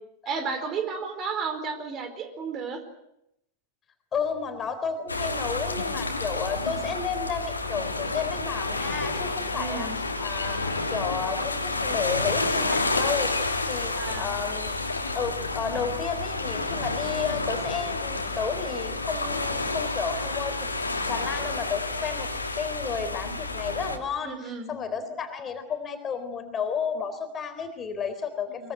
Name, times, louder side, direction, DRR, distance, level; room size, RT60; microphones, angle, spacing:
voice 1, 0.2-2.8 9.5-9.9 13.9-14.3 24.2-24.7 28.6-28.7, right 5 dB, 30° right, 8 dB, 4.4 m, -33 dB
voice 2, 4.1-9.9 10.2-14.7 15.1-20.5 21.1-22.3 22.6-24.3 24.7-28.7, left 6 dB, 25° left, 7 dB, 3.9 m, -32 dB
sound 1, 5.1-24.0, left 3 dB, 80° left, 3.0 m, -30 dB
24.0 x 23.5 x 7.9 m, 0.80 s
figure-of-eight pair, 90°, 0 cm